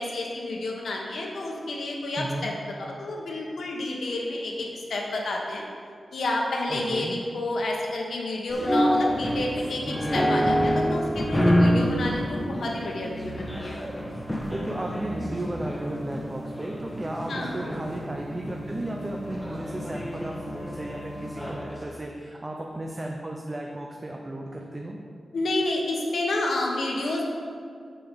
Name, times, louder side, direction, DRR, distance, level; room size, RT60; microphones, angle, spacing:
voice 1, 0.0-2.5 2.8-5.6 6.1-13.8 17.3-17.5 25.3-27.2, left 2 dB, 80° left, -1 dB, 1.4 m, -30 dB
voice 2, 2.2-2.5 6.7-7.2 14.2-25.0, right 1 dB, 20° right, 0 dB, 0.6 m, -34 dB
sound 1, 8.5-21.8, equal, 10° left, 1.2 m, -27 dB
7.1 x 7.0 x 5.1 m, 2.3 s
wide cardioid pair, 160°, 0 cm